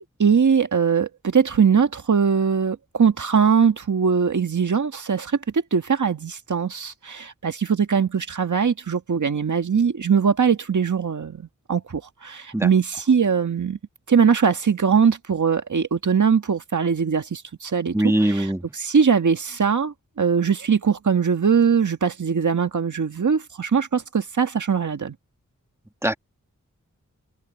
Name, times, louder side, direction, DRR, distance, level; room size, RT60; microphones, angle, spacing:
voice 1, 0.2-13.8 14.1-18.0 18.2-25.1, right 6 dB, 70° right, 1.8 m, -21 dB
voice 2, 17.9-18.6 26.0-26.2, right 1 dB, 10° right, 1.8 m, -21 dB
wide cardioid pair, 65°, 31 cm